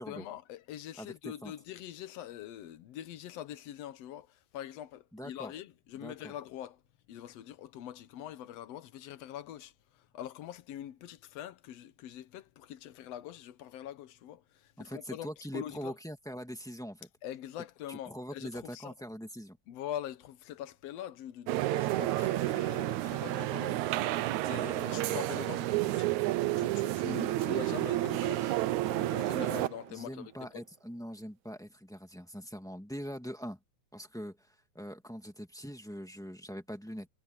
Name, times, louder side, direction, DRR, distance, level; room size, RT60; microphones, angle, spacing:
voice 1, 0.0-6.8 7.1-15.9 17.2-18.9 19.7-24.0 24.5-26.2 26.6-28.6 28.9-30.6, left 11 dB, 65° left, 1.9 m, -44 dB
voice 2, 1.0-1.5 5.1-5.5 6.0-6.3 14.8-17.1 17.9-19.6 24.8-25.2 29.9-33.6 33.9-37.1, equal, ahead, 0.9 m, -42 dB
sound 1, 21.5-29.9, right 15 dB, 75° right, 2.1 m, -30 dB
omnidirectional pair, 3.5 m